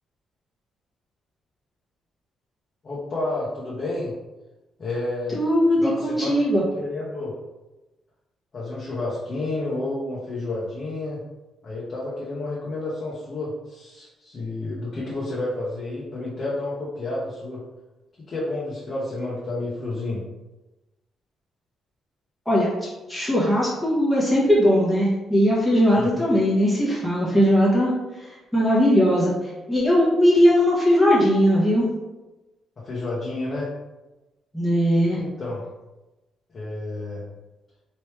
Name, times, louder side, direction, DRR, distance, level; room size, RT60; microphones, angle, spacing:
voice 1, 2.8-4.1 4.8-5.4 5.8-6.3 6.7-7.4 8.5-11.2 11.6-17.6 18.3-20.2 26.0-26.2 32.8-33.7 35.2-35.6 36.5-37.2, left 2 dB, 40° left, -6 dB, 0.9 m, -30 dB
voice 2, 5.3-6.6 22.5-27.9 28.5-31.9 34.5-35.2, equal, 5° left, -7 dB, 1.0 m, -19 dB
3.2 x 3.0 x 3.2 m, 1.1 s
cardioid pair, 90°, 0 cm